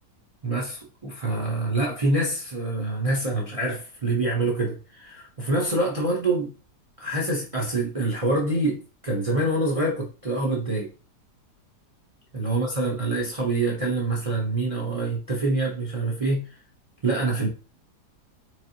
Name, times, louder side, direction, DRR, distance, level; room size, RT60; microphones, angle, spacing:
voice 1, 0.4-6.5 7.0-10.9 12.3-16.4 17.0-17.5, right 2 dB, 40° right, -2 dB, 0.4 m, -26 dB
4.1 x 3.2 x 2.7 m, 0.34 s
omnidirectional pair, 1.8 m